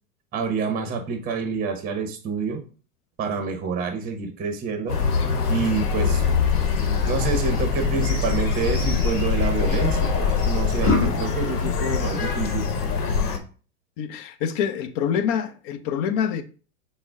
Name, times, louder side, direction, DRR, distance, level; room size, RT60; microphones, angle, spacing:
voice 1, 0.3-2.6 3.2-5.0 5.5-6.2 7.1-10.1 10.4-12.7, right 5 dB, 20° right, 0.8 m, -27 dB
sound 1, 4.9-13.4, left 5 dB, 85° left, 1.0 m, -24 dB
sound 2, 5.7-11.1, left 4 dB, 20° left, 2.0 m, -27 dB
voice 2, 14.0-16.4, left 8 dB, 40° left, 0.6 m, -26 dB
5.9 x 2.1 x 3.7 m
hypercardioid pair, 110°, 46 cm